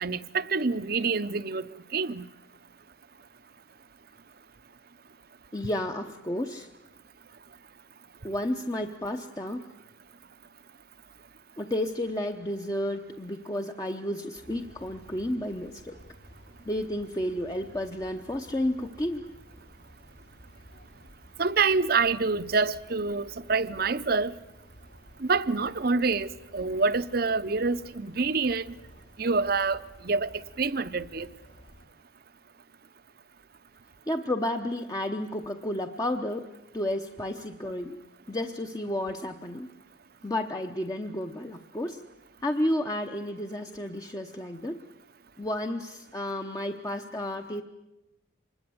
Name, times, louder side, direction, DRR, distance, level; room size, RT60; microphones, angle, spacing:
voice 1, 0.0-1.6 1.9-2.3 21.4-24.3 25.3-28.6 29.2-29.8 30.0-30.3 30.6-31.3, right 4 dB, 50° right, 0.8 m, -26 dB
voice 2, 5.5-6.7 8.2-9.7 11.6-16.0 16.7-19.2 34.1-36.5 36.7-38.0 38.3-39.7 40.2-42.0 42.4-44.8 45.4-47.6, left 1 dB, 20° left, 0.9 m, -31 dB
sound 1, 14.3-31.9, equal, 65° left, 2.9 m, -53 dB
26.0 x 21.0 x 7.9 m
head